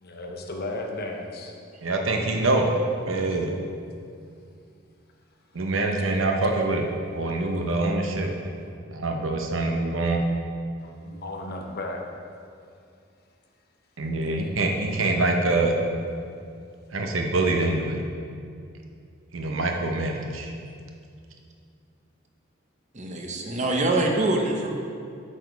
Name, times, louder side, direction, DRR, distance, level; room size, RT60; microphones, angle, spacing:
voice 1, 0.0-1.5 10.8-12.0, left 2 dB, 50° left, 2 dB, 0.8 m, -34 dB
voice 2, 1.8-2.7 3.1-3.5 5.5-6.9 7.1-8.3 8.9-10.2 14.0-15.7 16.9-18.0 19.3-20.5, right 2 dB, 75° right, 2 dB, 0.9 m, -25 dB
voice 3, 22.9-24.7, right 2 dB, 35° right, 1 dB, 0.9 m, -24 dB
7.8 x 5.2 x 4.7 m, 2.4 s
head